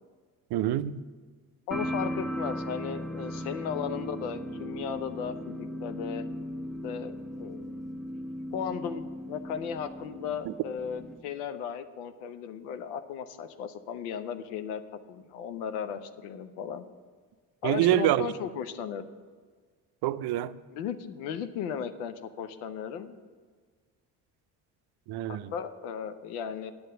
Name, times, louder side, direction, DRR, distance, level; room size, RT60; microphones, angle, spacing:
voice 1, 0.5-1.0 10.5-10.6 17.6-18.3 20.0-20.6 25.1-25.5, right 13 dB, 60° right, 0.5 m, -26 dB
voice 2, 1.7-6.2 6.8-7.7 8.5-14.8 15.1-16.8 17.6-19.0 20.7-23.2 25.3-26.7, left 7 dB, 90° left, 0.7 m, -36 dB
sound 1, 1.7-11.2, equal, ahead, 0.9 m, -37 dB
9.2 x 7.1 x 6.7 m
supercardioid pair, 60°, 44 cm